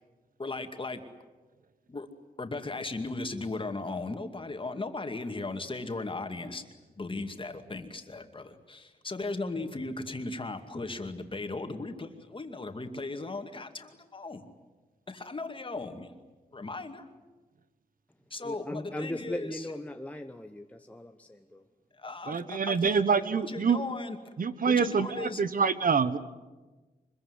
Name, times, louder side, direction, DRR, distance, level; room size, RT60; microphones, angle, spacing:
voice 1, 0.4-1.0 1.9-2.1 2.4-6.6 7.0-14.4 15.1-16.1 16.5-17.1 18.3-19.6 22.0-24.2 24.7-25.5, left 3 dB, 35° left, 6 dB, 2.4 m, -37 dB
voice 2, 18.4-21.6, left 1 dB, 10° left, 5 dB, 1.0 m, -38 dB
voice 3, 22.3-23.8 24.4-26.2, right 5 dB, 60° right, 13 dB, 1.3 m, -26 dB
25.0 x 22.0 x 9.7 m, 1.2 s
wide cardioid pair, 105°, 16 cm